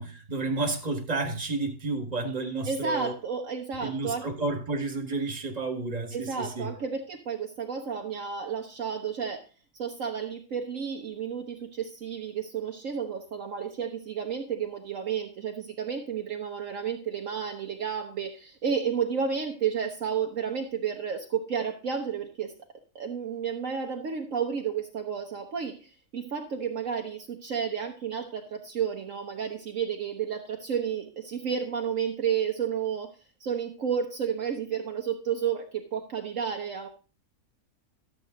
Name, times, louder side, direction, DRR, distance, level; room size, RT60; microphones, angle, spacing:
voice 1, 0.0-3.1 3.8-6.7, right 3 dB, 25° right, 4 dB, 1.8 m, -31 dB
voice 2, 2.7-4.3 6.1-9.4 9.7-22.5 22.9-33.1 33.4-36.9, right 7 dB, 60° right, 2 dB, 1.3 m, -31 dB
12.5 x 7.6 x 3.8 m, 0.34 s
omnidirectional pair, 1.6 m